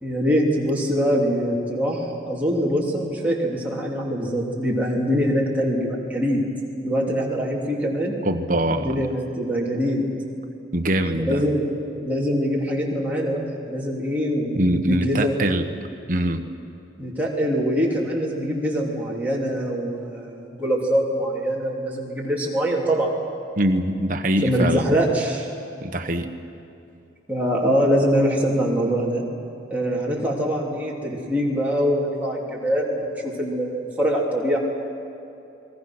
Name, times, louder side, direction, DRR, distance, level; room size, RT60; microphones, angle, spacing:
voice 1, 0.0-6.4 6.8-8.1 8.8-10.1 11.1-14.6 14.9-15.4 17.0-23.1 24.4-25.5 27.3-29.2 29.7-34.6, equal, 10° right, -4 dB, 3.3 m, -23 dB
voice 2, 8.2-9.1 10.7-11.4 14.5-15.7 16.1-16.4 23.6-24.9 25.8-26.3, right 1 dB, 45° right, 5 dB, 1.3 m, -23 dB
29.5 x 21.0 x 6.2 m, 2.8 s
head